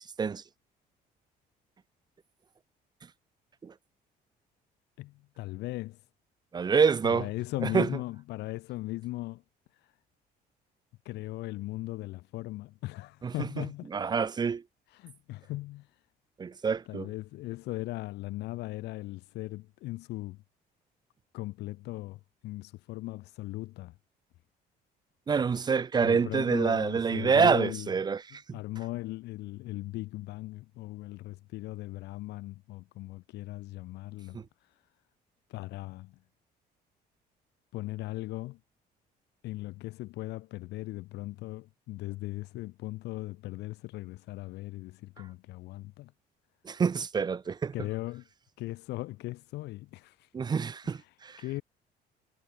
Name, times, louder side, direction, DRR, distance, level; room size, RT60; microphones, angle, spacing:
voice 1, 5.0-6.1 7.0-9.4 9.7-10.0 11.0-13.9 14.9-16.0 16.9-20.4 21.3-23.9 26.0-27.9 28.5-34.8 35.5-36.2 37.7-38.6 39.4-46.1 47.7-48.3 48.6-50.3 50.9-51.6, left 18 dB, 85° left, 4.3 m, -38 dB
voice 2, 6.5-7.3 7.6-7.9 13.2-13.6 13.9-14.6 16.4-17.1 25.3-28.6 34.3-34.4 46.6-47.7 50.3-51.4, right 5 dB, 25° right, 0.5 m, -27 dB
cardioid pair, 110°, 17 cm